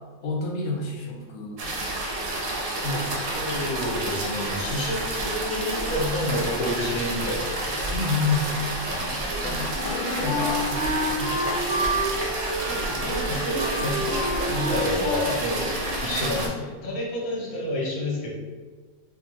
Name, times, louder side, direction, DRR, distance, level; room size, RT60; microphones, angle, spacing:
voice 1, 0.2-1.8 2.8-3.7 7.9-8.6 9.4-12.3 12.7-12.8, left 3 dB, 90° left, 0 dB, 1.1 m, -30 dB
sound 1, 1.6-16.5, right 1 dB, 65° right, 0.9 m, -29 dB
voice 2, 3.3-7.8 8.9-9.2 12.7-18.3, left 1 dB, 45° left, -3 dB, 0.6 m, -29 dB
Wind instrument woodwind instrument, 9.3-16.6, equal, 20° right, 0.9 m, -30 dB
2.7 x 2.2 x 3.0 m, 1.3 s
omnidirectional pair, 1.6 m